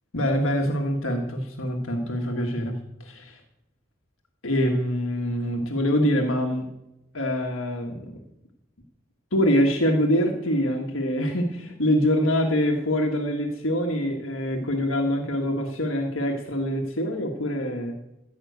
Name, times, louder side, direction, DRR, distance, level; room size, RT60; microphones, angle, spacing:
voice 1, 0.1-2.7 3.0-3.4 4.4-6.7 7.1-8.2 9.3-18.0, equal, 70° left, 2 dB, 1.6 m, -25 dB
14.0 x 5.8 x 8.1 m, 0.87 s
head